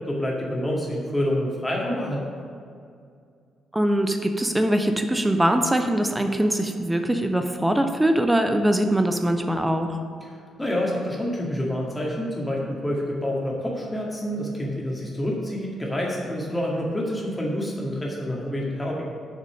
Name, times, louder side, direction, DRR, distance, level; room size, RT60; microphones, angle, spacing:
voice 1, 0.1-2.2 10.3-19.0, equal, 15° left, -3 dB, 2.0 m, -27 dB
voice 2, 3.7-10.0, right 1 dB, 10° right, 6 dB, 0.7 m, -22 dB
6.6 x 6.3 x 7.6 m, 2.3 s
figure-of-eight pair, 40°, 0 cm